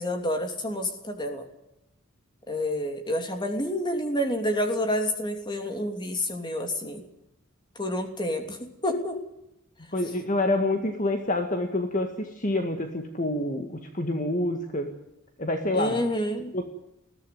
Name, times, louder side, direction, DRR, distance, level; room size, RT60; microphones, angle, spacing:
voice 1, 0.0-1.5 2.5-7.0 7.7-9.2 15.7-16.6, left 1 dB, 20° left, 5 dB, 2.9 m, -29 dB
voice 2, 9.9-14.9 15.4-16.0 16.5-16.6, left 1 dB, 35° left, 5 dB, 1.9 m, -27 dB
21.5 x 15.5 x 9.4 m, 0.86 s
head